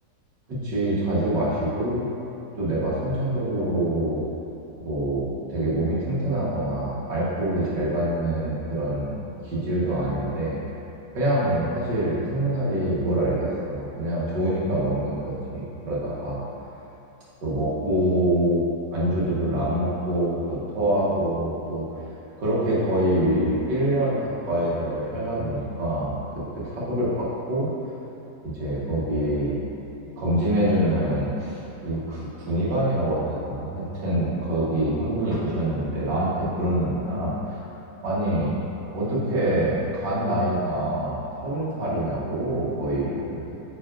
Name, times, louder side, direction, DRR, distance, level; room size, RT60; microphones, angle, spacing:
voice 1, 0.5-2.0 2.6-4.2 4.8-10.6 11.1-16.4 17.4-18.7 18.9-21.8 22.4-27.1 27.5-27.7 28.4-29.6 30.2-37.6 38.0-38.5 38.9-43.6, right 1 dB, 85° right, -7 dB, 2.2 m, -25 dB
9.0 x 6.2 x 2.6 m, 2.9 s
omnidirectional pair, 1.9 m